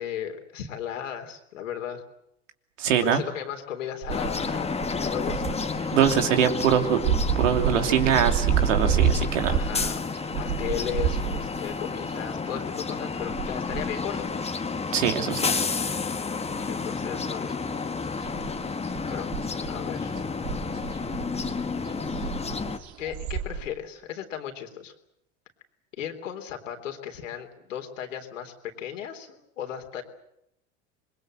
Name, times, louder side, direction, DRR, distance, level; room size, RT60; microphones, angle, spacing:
voice 1, 0.0-2.0 3.0-4.7 5.0-5.6 9.5-10.0 10.4-14.3 16.7-17.7 19.1-19.3 19.7-20.1 23.0-24.9 25.9-30.0, left 9 dB, 85° left, 5 dB, 3.7 m, -35 dB
voice 2, 2.8-3.2 5.9-7.0 7.4-9.5 14.9-15.5, right 8 dB, 85° right, 5 dB, 3.1 m, -23 dB
sound 1, 4.0-15.6 15.9-17.2 17.5-23.7, right 7 dB, 55° right, 3.6 m, -30 dB
sound 2, 4.1-22.8, left 4 dB, 15° left, 1.5 m, -31 dB
26.5 x 22.0 x 7.8 m, 0.81 s
hypercardioid pair, 85°, 37 cm